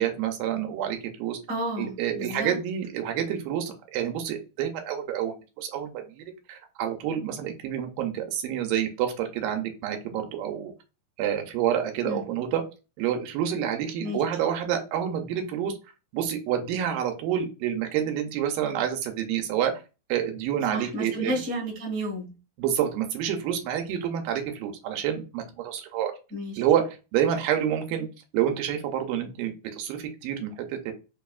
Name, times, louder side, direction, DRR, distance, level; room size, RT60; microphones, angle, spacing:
voice 1, 0.0-1.4 1.8-10.7 11.2-12.6 13.0-15.7 16.1-19.7 20.1-21.4 22.6-26.1 26.6-28.1 28.3-30.9, right 9 dB, 85° right, 2.3 m, -28 dB
voice 2, 1.5-2.6 12.0-12.2 14.0-14.2 20.7-22.3 26.3-26.6, equal, 45° right, 0.8 m, -31 dB
5.3 x 2.4 x 2.2 m
omnidirectional pair, 4.0 m